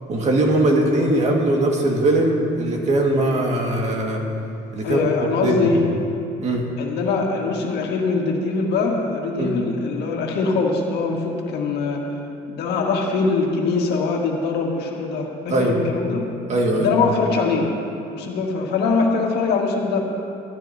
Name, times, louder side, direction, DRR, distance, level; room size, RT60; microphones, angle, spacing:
voice 1, 0.1-4.2 4.7-5.8 6.4-6.7 9.4-9.6 15.5-15.8 16.5-16.9, right 1 dB, 40° right, 0 dB, 1.9 m, -20 dB
voice 2, 4.8-5.8 6.8-12.0 12.5-16.2 16.7-17.7 18.1-20.0, left 4 dB, 75° left, 0 dB, 1.9 m, -22 dB
15.0 x 14.0 x 2.8 m, 2.7 s
cardioid pair, 110°, 17 cm